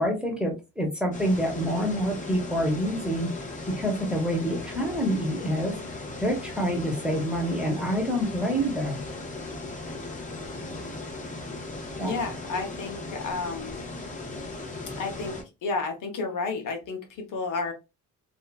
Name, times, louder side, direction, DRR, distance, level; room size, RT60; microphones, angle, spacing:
voice 1, 0.0-3.3 3.7-5.8 6.2-9.0 12.0-12.1, equal, 5° right, 0 dB, 1.0 m, -27 dB
sound 1, 1.1-15.4, left 2 dB, 20° left, 0.8 m, -37 dB
voice 2, 12.0-13.8 15.0-17.7, left 4 dB, 65° left, 4 dB, 0.9 m, -31 dB
2.8 x 2.4 x 2.3 m, 0.25 s
cardioid pair, 110°, 35 cm